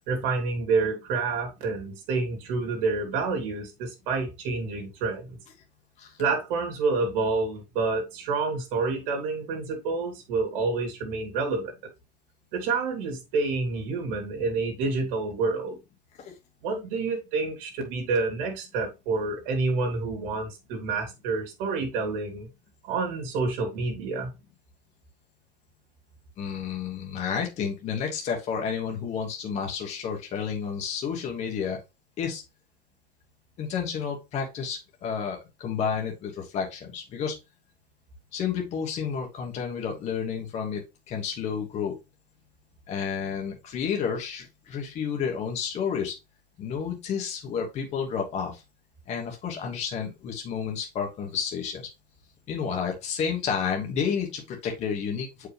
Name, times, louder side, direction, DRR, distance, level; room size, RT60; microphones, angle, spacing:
voice 1, 0.1-5.4 6.2-11.7 12.5-15.8 16.6-22.5 22.8-24.3, right 4 dB, 45° right, 2.6 m, -28 dB
voice 2, 26.4-31.8 32.2-32.4 33.6-37.3 38.3-42.0 42.9-46.1 46.6-48.6 49.1-51.9 52.5-55.5, left 7 dB, 20° left, 1.3 m, -31 dB
7.3 x 4.9 x 3.3 m
supercardioid pair, 175°, 33 cm